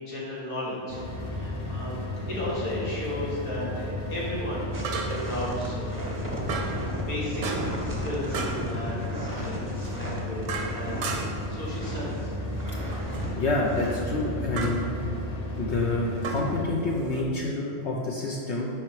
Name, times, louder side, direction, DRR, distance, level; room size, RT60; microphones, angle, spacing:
voice 1, 0.0-2.0 2.3-7.4 7.9-11.1 11.5-12.3, left 1 dB, 85° left, -7 dB, 2.2 m, -35 dB
sound 1, 0.9-16.6, left 1 dB, 40° left, 0.6 m, -34 dB
sound 2, 1.1-1.3 4.8-5.4 6.5-6.8 7.4-7.9 8.3-8.6 9.8-11.5 12.9-13.3 14.6-14.8 16.2-17.2, right 4 dB, 75° right, 1.2 m, -34 dB
sound 3, 4.7-12.2 12.5-13.3 13.7-13.9, equal, 20° right, 0.7 m, -36 dB
voice 2, 13.4-14.9 15.6-18.7, left 2 dB, 60° left, -2 dB, 0.9 m, -28 dB
10.5 x 4.4 x 3.1 m, 2.5 s
omnidirectional pair, 1.5 m